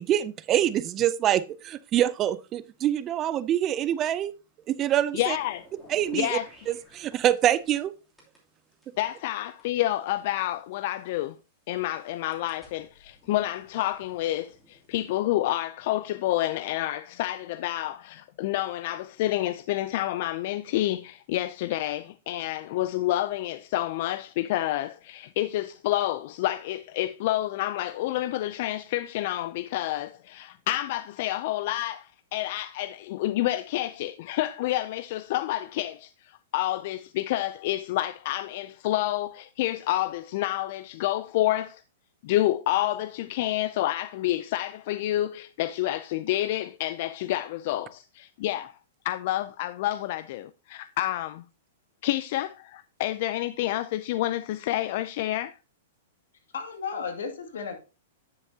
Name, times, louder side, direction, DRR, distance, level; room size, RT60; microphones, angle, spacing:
voice 1, 0.0-4.3 4.7-5.4 5.9-6.4 6.7-7.9, right 11 dB, 25° right, 0.4 m, -25 dB
voice 2, 5.1-5.7 6.1-6.5 9.0-11.4 11.7-41.8 42.2-48.7 49.0-51.4 52.0-55.5, left 14 dB, 50° left, 0.4 m, -29 dB
sound 1, 5.3-7.9 8.2-11.1 11.7-15.2, equal, ahead, 2.8 m, -55 dB
voice 3, 56.5-57.7, left 5 dB, 85° left, 2.2 m, -34 dB
10.0 x 6.6 x 2.8 m
hypercardioid pair, 145°, 0 cm